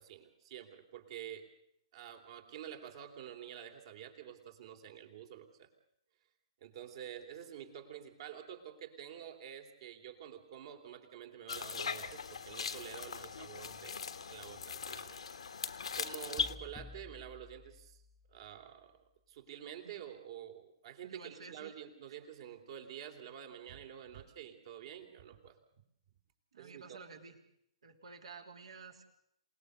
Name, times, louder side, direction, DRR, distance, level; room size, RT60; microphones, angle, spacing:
voice 1, 0.0-1.5 1.9-5.7 6.6-15.2 15.9-18.0 18.3-19.0 19.3-25.6 26.6-27.0, right 9 dB, 50° right, 4 dB, 3.3 m, -49 dB
sound 1, 11.5-16.6, left 6 dB, 75° left, 1.4 m, -40 dB
sound 2, 16.4-18.5, left 4 dB, 15° left, 0.8 m, -52 dB
voice 2, 21.0-21.7 26.5-27.4 27.8-29.1, right 4 dB, 70° right, 4 dB, 3.3 m, -52 dB
27.5 x 19.0 x 6.8 m, 0.75 s
figure-of-eight pair, 125°, 3 cm